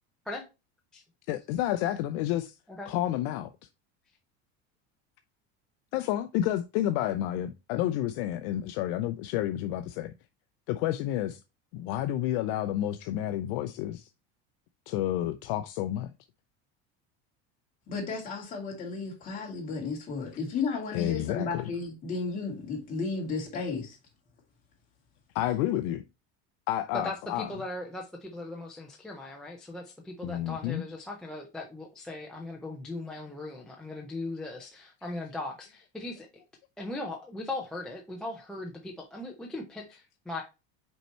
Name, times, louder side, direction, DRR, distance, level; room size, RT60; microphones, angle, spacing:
voice 1, 1.3-2.6 2.9-3.5 5.9-10.1 10.7-11.4 11.7-14.1 14.9-16.1 20.9-21.7 25.3-26.0 26.7-27.5 30.2-30.8, left 13 dB, 55° left, 0.5 m, -30 dB
voice 2, 17.9-24.0, left 4 dB, 25° left, 2.4 m, -33 dB
voice 3, 27.0-36.4 36.8-40.4, left 2 dB, ahead, 0.4 m, -39 dB
5.5 x 4.5 x 4.3 m
cardioid pair, 175°, 33 cm